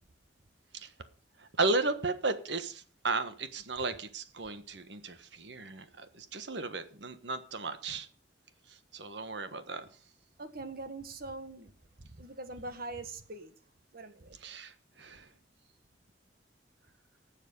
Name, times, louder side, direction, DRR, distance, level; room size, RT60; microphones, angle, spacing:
voice 1, 1.4-8.1 8.7-9.9 14.4-15.3, right 3 dB, 70° right, 1.4 m, -35 dB
voice 2, 10.4-11.7 12.0-13.5 13.9-14.4, right 2 dB, 55° right, 1.6 m, -42 dB
18.5 x 7.4 x 5.4 m
head